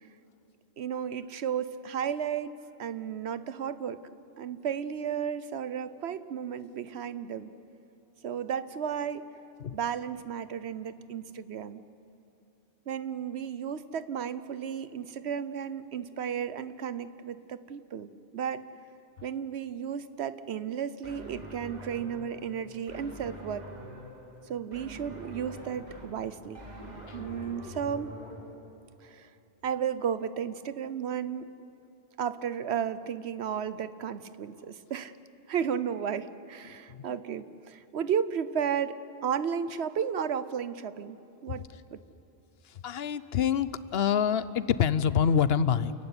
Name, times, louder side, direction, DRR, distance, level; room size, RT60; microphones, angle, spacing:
voice 1, 0.8-2.5 2.8-4.0 4.4-7.5 8.2-9.3 9.7-11.8 12.9-18.7 19.2-23.7 24.5-26.6 27.1-28.1 29.0-29.3 29.6-31.5 32.2-35.1 35.5-39.0 39.2-42.0, right 8 dB, 85° right, 14 dB, 1.1 m, -33 dB
sound 1, 21.0-28.4, equal, 40° right, 4.3 m, -45 dB
voice 2, 36.7-37.0 41.5-41.6 42.8-45.9, left 8 dB, 70° left, 15 dB, 1.0 m, -26 dB
28.5 x 15.0 x 9.8 m, 2.9 s
omnidirectional pair, 1.1 m